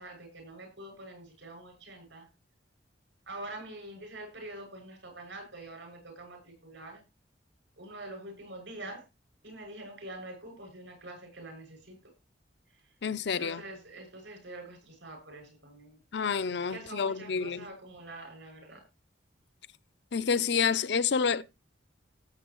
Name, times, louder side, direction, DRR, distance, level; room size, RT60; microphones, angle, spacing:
voice 1, 0.0-2.3 3.3-7.0 7.8-9.0 9.4-12.0 12.7-12.8 13.3-16.0 16.7-18.8, right 1 dB, 80° right, 6.4 m, -45 dB
voice 2, 13.0-13.6 16.1-17.7 20.1-21.4, left 6 dB, 65° left, 0.6 m, -28 dB
18.5 x 7.5 x 3.0 m
head